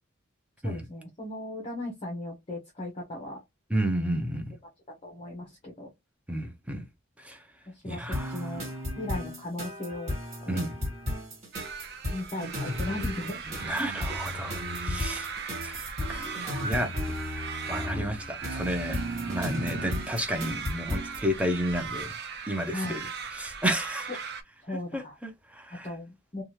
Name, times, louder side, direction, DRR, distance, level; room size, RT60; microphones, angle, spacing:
voice 1, 0.6-3.4 5.0-5.9 7.8-8.7 9.0-10.7 12.1-13.4 13.8-14.2 22.7-23.0 24.6-25.1 25.8-26.4, left 1 dB, 30° left, 0.7 m, -37 dB
voice 2, 3.7-4.5 6.3-6.8 7.2-7.4 7.9-8.5 10.5-10.8 13.6-15.3 15.6-15.8 16.1-16.9 17.7-19.0 19.3-22.2 22.5-24.1 24.9-25.9, equal, 5° right, 0.5 m, -32 dB
sound 1, 8.1-21.2, left 1 dB, 30° right, 1.7 m, -34 dB
sound 2, 11.5-24.4, right 5 dB, 50° right, 0.5 m, -39 dB
2.8 x 2.3 x 3.0 m
head